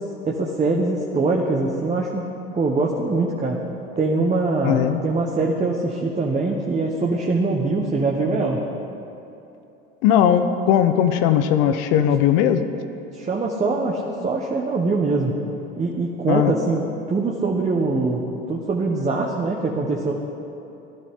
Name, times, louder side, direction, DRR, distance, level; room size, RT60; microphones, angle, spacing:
voice 1, 0.3-2.3 2.5-3.6 4.0-8.7 13.1-15.4 15.8-16.8 17.1-20.1, right 3 dB, 25° right, -1 dB, 1.3 m, -23 dB
voice 2, 4.6-5.0 10.0-12.6 16.3-16.5, left 9 dB, 70° left, 9 dB, 0.9 m, -18 dB
16.0 x 11.0 x 3.8 m, 2.8 s
hypercardioid pair, 85°, 29 cm